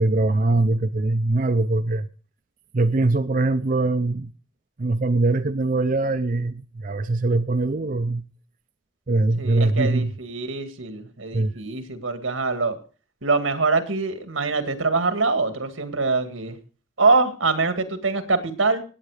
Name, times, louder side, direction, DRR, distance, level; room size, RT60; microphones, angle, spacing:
voice 1, 0.0-2.1 2.7-4.3 4.8-8.2 9.1-10.1 11.3-11.5, right 2 dB, 45° right, 0.6 m, -22 dB
voice 2, 9.4-12.8 13.2-16.6 17.0-18.8, right 3 dB, 90° right, 2.0 m, -24 dB
17.5 x 9.1 x 4.9 m
head